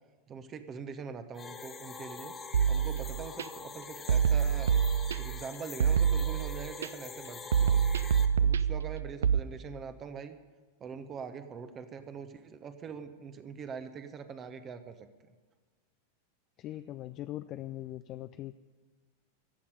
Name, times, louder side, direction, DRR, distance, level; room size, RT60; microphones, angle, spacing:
voice 1, 0.3-2.3 2.7-4.8 5.1-7.9 8.4-10.4 10.8-15.3, right 6 dB, 25° right, 9 dB, 1.1 m, -43 dB
sound 1, 1.3-8.3, left 5 dB, 20° left, 1.4 m, -45 dB
sound 2, 2.5-3.4 4.1-5.4 5.8-6.9 7.5-9.4, right 7 dB, 65° right, 0.5 m, -26 dB
voice 2, 16.6-18.5, left 14 dB, 35° left, 12 dB, 0.4 m, -41 dB
15.0 x 7.3 x 9.8 m, 1.4 s
figure-of-eight pair, 90°, 0 cm